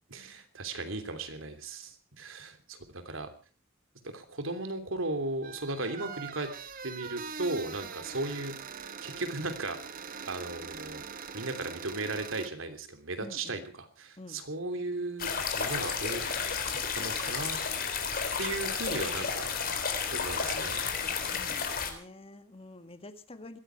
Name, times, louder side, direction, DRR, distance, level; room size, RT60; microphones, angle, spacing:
voice 1, 0.1-3.3 4.1-6.5 6.8-8.6 9.0-9.8 10.2-11.0 11.3-16.2 16.6-17.6 18.4-19.8 20.1-20.9, right 2 dB, 80° right, 7 dB, 3.2 m, -36 dB
sound 1, 5.4-12.5, right 6 dB, 45° right, 1.3 m, -42 dB
voice 2, 13.2-13.6 14.2-14.4 21.3-23.6, left 2 dB, 30° left, 9 dB, 1.7 m, -48 dB
sound 2, 15.2-21.9, left 6 dB, 50° left, 3.8 m, -32 dB
21.0 x 14.5 x 4.7 m, 0.39 s
head